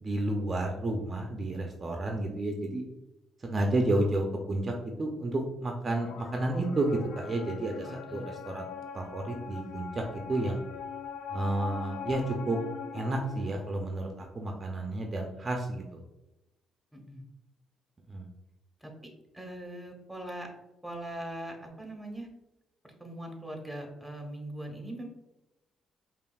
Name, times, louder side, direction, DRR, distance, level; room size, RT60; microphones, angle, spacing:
voice 1, 0.0-2.8 3.4-4.7 5.0-8.6 8.9-10.0 10.3-10.6 11.3-12.6 12.9-16.0 18.1-18.2, right 2 dB, 35° right, 2 dB, 0.5 m, -31 dB
sound 1, 6.0-14.1, left 6 dB, 90° left, 0.4 m, -41 dB
voice 2, 7.8-8.3 10.5-10.6 16.9-17.2 18.8-20.5 20.8-22.3 22.8-25.1, right 1 dB, ahead, 1 dB, 0.9 m, -41 dB
5.2 x 2.4 x 2.3 m, 0.95 s
cardioid pair, 90°, 0 cm